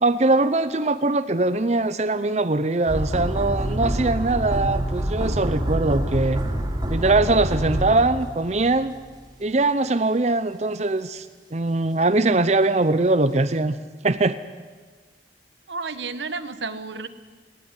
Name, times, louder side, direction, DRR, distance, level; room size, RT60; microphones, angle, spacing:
voice 1, 0.0-6.4 6.9-8.9 9.4-11.3 11.5-13.8 14.0-14.4, right 2 dB, 40° right, 11 dB, 0.7 m, -21 dB
sound 1, 2.9-8.9 9.2-9.3, right 1 dB, 25° right, 3.2 m, -26 dB
voice 2, 15.7-17.1, right 4 dB, 85° right, 11 dB, 1.3 m, -31 dB
20.0 x 17.0 x 9.9 m, 1.4 s
head